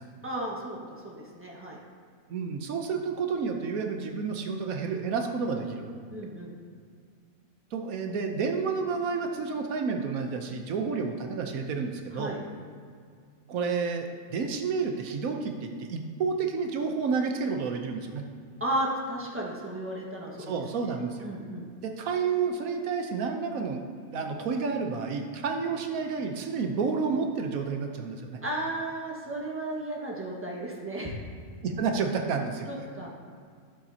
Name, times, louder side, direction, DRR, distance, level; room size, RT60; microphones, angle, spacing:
voice 1, 0.2-1.8 6.1-6.5 12.1-12.4 18.6-20.5 21.2-21.7 28.4-31.2 32.7-33.1, right 1 dB, 10° right, -3 dB, 1.5 m, -34 dB
voice 2, 2.3-5.9 7.7-12.3 13.5-18.2 20.3-21.2 21.8-28.4 31.6-32.7, right 5 dB, 90° right, 4 dB, 1.3 m, -30 dB
13.5 x 7.5 x 2.8 m, 2.2 s
omnidirectional pair, 1.4 m